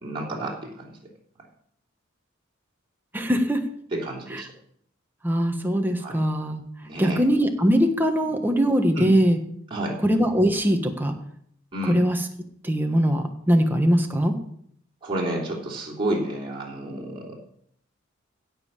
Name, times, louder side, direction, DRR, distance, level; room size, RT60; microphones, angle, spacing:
voice 1, 0.0-0.8 3.9-4.5 6.0-6.2 6.8-7.2 8.9-9.1 9.7-10.0 11.7-12.0 15.0-17.4, right 1 dB, 25° right, -3 dB, 3.3 m, -30 dB
voice 2, 3.1-3.6 4.3-4.4 5.2-6.6 7.0-9.4 10.0-11.1 11.8-12.2 12.6-14.3, equal, 10° right, 4 dB, 1.4 m, -21 dB
16.5 x 5.6 x 7.5 m, 0.67 s
head